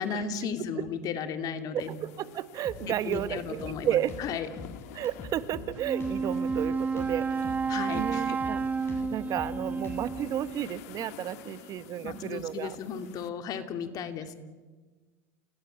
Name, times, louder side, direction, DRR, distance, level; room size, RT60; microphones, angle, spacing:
voice 1, 0.0-1.9 2.8-4.5 7.7-8.4 12.0-14.3, left 6 dB, 45° left, 7 dB, 2.9 m, -35 dB
voice 2, 1.7-4.1 4.9-7.5 7.9-8.6 8.9-12.8, right 11 dB, 45° right, 14 dB, 1.3 m, -32 dB
sound 1, 1.8-13.3, left 11 dB, 75° left, 1.7 m, -50 dB
Drum kit, 2.6-10.3, left 3 dB, 30° left, 8.0 m, -44 dB
Wind instrument woodwind instrument, 5.8-10.7, right 5 dB, 20° right, 1.7 m, -31 dB
29.0 x 18.0 x 9.2 m, 1.4 s
supercardioid pair, 105°, 9 cm